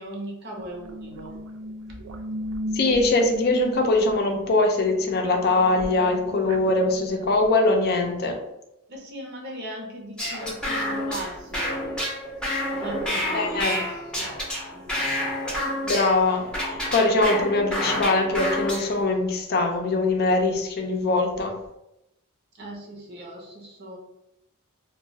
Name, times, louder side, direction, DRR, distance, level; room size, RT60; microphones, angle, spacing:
voice 1, 0.0-1.4 8.9-12.0 12.7-13.8 14.2-14.4 14.7-15.1 15.6-15.8 22.5-24.0, right 1 dB, 55° right, -1 dB, 0.8 m, -38 dB
sound 1, 0.6-7.5, equal, 90° right, 0.4 m, -37 dB
voice 2, 2.7-8.4 13.3-13.8 15.8-21.5, left 2 dB, 50° left, 3 dB, 0.5 m, -22 dB
sound 2, 10.2-19.0, left 1 dB, 5° left, 0.7 m, -29 dB
2.3 x 2.2 x 3.9 m, 0.88 s
head